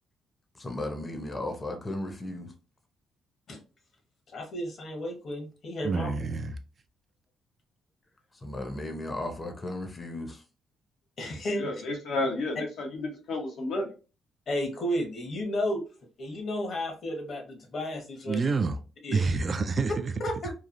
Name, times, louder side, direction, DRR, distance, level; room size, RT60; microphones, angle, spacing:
voice 1, 0.5-2.5 8.3-10.4, left 1 dB, 25° left, 0.6 m, -35 dB
voice 2, 4.3-6.1 11.2-11.6 14.5-15.8 16.2-18.4 19.0-19.2 20.2-20.5, left 1 dB, 55° left, 1.0 m, -32 dB
voice 3, 5.8-6.6 18.3-18.8 19.1-20.1, right 4 dB, 40° right, 0.3 m, -28 dB
voice 4, 11.6-13.9, left 2 dB, 75° left, 0.8 m, -31 dB
3.0 x 2.4 x 2.5 m
cardioid pair, 90°, 0 cm